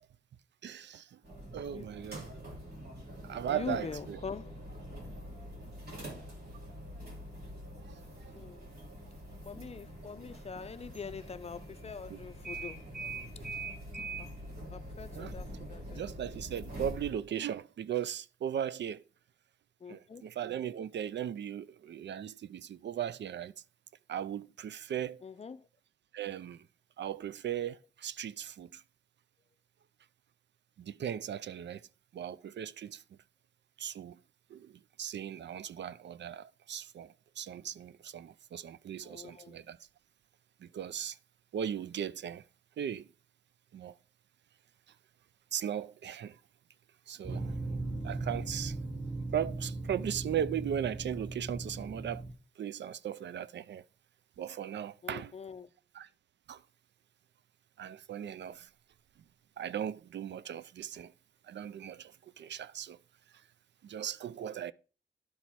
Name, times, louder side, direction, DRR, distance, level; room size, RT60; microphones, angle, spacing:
voice 1, 0.6-1.2 1.5-2.4 3.2-4.2 7.8-8.3 12.1-12.2 15.2-15.4 15.9-19.0 19.9-23.5 24.1-25.2 26.1-26.6 27.0-28.8 30.8-31.9 32.1-33.0 33.8-34.2 34.5-39.8 40.6-41.2 41.5-42.4 42.8-43.1 43.7-44.0 45.5-46.4 47.1-47.5 48.0-48.8 49.3-52.2 52.6-53.8 54.4-55.3 55.9-56.1 56.5-56.6 57.8-58.7 59.6-61.1 61.5-63.0 63.8-64.7, right 9 dB, 80° right, 0.4 m, -38 dB
sound 1, 1.2-17.1, right 1 dB, 60° right, 2.9 m, -44 dB
voice 2, 3.5-4.5 8.4-8.7 9.4-12.8 14.2-14.3 14.7-16.0 19.8-20.2 25.2-25.6 39.0-39.5 55.0-55.7, left 5 dB, 35° left, 0.4 m, -43 dB
sound 2, 47.2-52.3, right 2 dB, 15° right, 1.2 m, -38 dB
11.5 x 4.5 x 4.2 m
wide cardioid pair, 145°, 18 cm